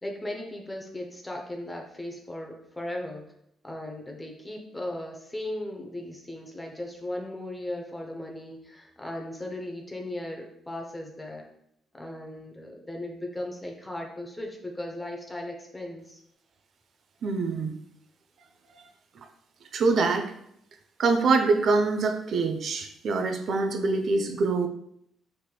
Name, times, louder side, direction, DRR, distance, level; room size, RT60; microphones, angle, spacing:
voice 1, 0.0-3.3 3.6-11.4 11.9-16.2, left 1 dB, 15° left, 1 dB, 0.5 m, -37 dB
voice 2, 17.2-17.7 19.7-20.3 21.0-24.7, right 3 dB, 60° right, 6 dB, 0.4 m, -24 dB
3.3 x 2.9 x 2.3 m, 0.73 s
cardioid pair, 90°, 0 cm